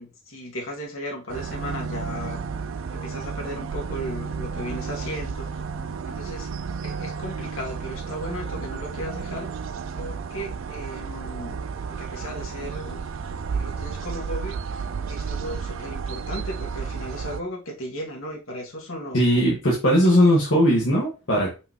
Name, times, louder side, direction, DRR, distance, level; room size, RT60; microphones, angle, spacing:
voice 1, 0.0-5.6 6.0-6.5 6.8-9.5 9.9-11.6 11.9-13.0 13.5-19.3 20.1-20.2, equal, 90° left, -1 dB, 2.5 m, -36 dB
sound 1, 1.3-17.4, right 5 dB, 75° right, 0.4 m, -32 dB
voice 2, 19.1-21.5, equal, 65° left, -4 dB, 2.0 m, -19 dB
5.7 x 5.6 x 3.2 m, 0.30 s
head